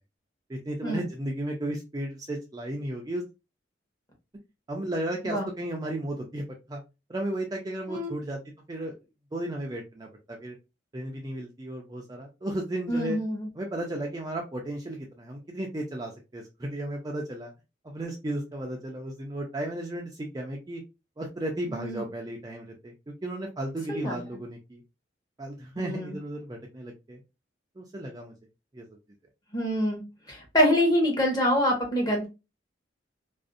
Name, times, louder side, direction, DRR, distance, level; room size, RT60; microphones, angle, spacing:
voice 1, 0.5-3.2 4.7-6.8 7.1-8.4 8.7-8.9 9.3-10.6 10.9-13.2 13.6-17.5 17.8-20.8 21.2-24.8 25.4-27.2 27.8-28.3 28.7-28.9, right 1 dB, 20° right, 0 dB, 0.3 m, -34 dB
voice 2, 12.9-13.5 21.7-22.0 23.9-24.2 25.8-26.2 29.5-32.3, equal, 20° left, 0 dB, 0.8 m, -26 dB
2.5 x 2.0 x 2.4 m, 0.27 s
head